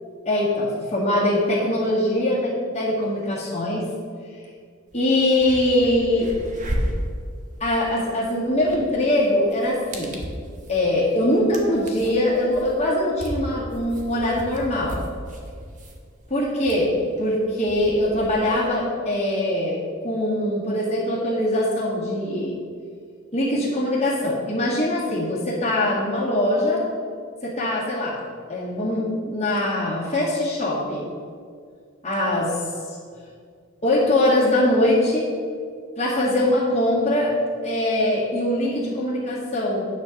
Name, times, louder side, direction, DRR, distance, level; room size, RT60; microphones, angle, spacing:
voice 1, 0.3-3.9 4.9-6.3 7.6-10.2 10.7-15.0 16.3-22.6 23.3-26.8 27.4-28.2 28.5-31.1 32.0-32.6 32.9-33.0 33.8-35.3 36.0-37.4 37.6-39.9, left 1 dB, 35° left, -7 dB, 1.9 m, -22 dB
sound 1, 4.9-5.0 5.3-18.7, equal, 40° right, 1.3 m, -35 dB
9.2 x 4.3 x 6.3 m, 2.1 s
head